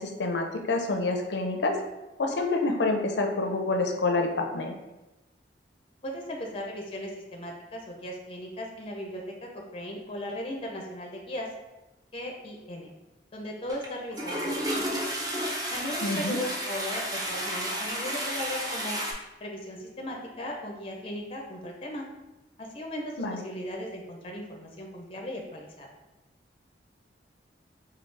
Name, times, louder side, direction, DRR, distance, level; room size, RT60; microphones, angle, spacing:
voice 1, 0.0-1.8 2.2-4.7 16.0-16.4 23.2-23.4, left 2 dB, 80° left, 4 dB, 0.5 m, -27 dB
voice 2, 6.0-11.5 12.1-12.9 13.3-15.1 15.7-19.0 19.4-22.0 22.6-25.9, left 1 dB, 30° left, 1 dB, 0.5 m, -37 dB
Toilet flush, 13.7-13.9 14.1-19.1, equal, 20° right, 0.6 m, -32 dB
4.8 x 2.3 x 3.2 m, 1.0 s
head